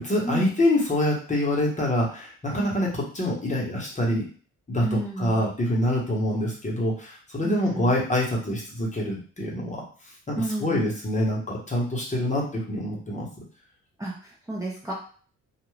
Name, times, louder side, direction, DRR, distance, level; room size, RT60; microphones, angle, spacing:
voice 1, 0.0-4.3 4.7-9.8 10.3-13.3, left 1 dB, 25° left, -3 dB, 1.1 m, -26 dB
voice 2, 4.8-5.4 7.4-7.9 10.4-10.8 14.0-14.9, right 1 dB, 10° right, -5 dB, 0.8 m, -31 dB
2.5 x 2.4 x 3.2 m, 0.41 s
cardioid pair, 90°, 30 cm